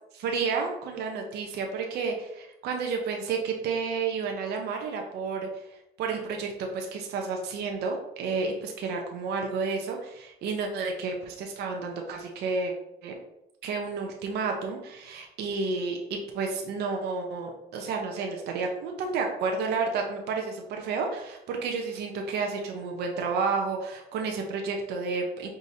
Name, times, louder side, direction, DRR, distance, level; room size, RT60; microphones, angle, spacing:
voice 1, 0.1-12.7 13.0-13.1 13.6-25.5, right 4 dB, 75° right, 2 dB, 0.6 m, -31 dB
4.8 x 2.7 x 2.7 m, 0.84 s
cardioid pair, 110°, 17 cm